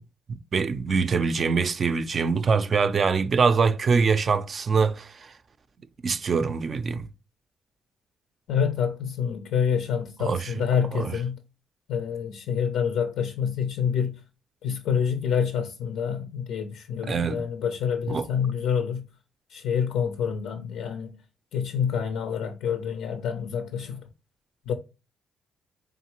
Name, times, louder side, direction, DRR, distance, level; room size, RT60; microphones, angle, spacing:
voice 1, 0.3-5.3 6.0-7.1 10.2-10.5 10.9-11.2 17.0-17.4 18.1-18.3, right 5 dB, 45° right, 0.4 m, -24 dB
voice 2, 8.5-11.4 11.9-14.2 14.6-19.0 19.5-21.2 21.5-24.0 24.7-24.8, left 7 dB, 90° left, 0.5 m, -27 dB
3.7 x 3.6 x 2.9 m
cardioid pair, 90°, 0 cm